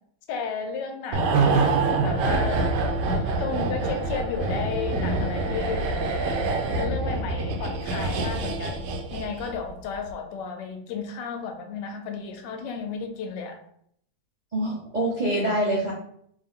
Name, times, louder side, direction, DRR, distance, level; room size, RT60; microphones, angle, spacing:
voice 1, 0.3-1.6 2.0-2.7 3.1-5.9 6.7-13.6, left 5 dB, 85° left, 6 dB, 1.3 m, -33 dB
sound 1, 1.1-9.7 9.9-10.1, right 3 dB, 85° right, 1.2 m, -25 dB
voice 2, 14.5-15.9, right 1 dB, 60° right, -5 dB, 0.4 m, -25 dB
3.6 x 2.6 x 3.5 m, 0.69 s
omnidirectional pair, 1.8 m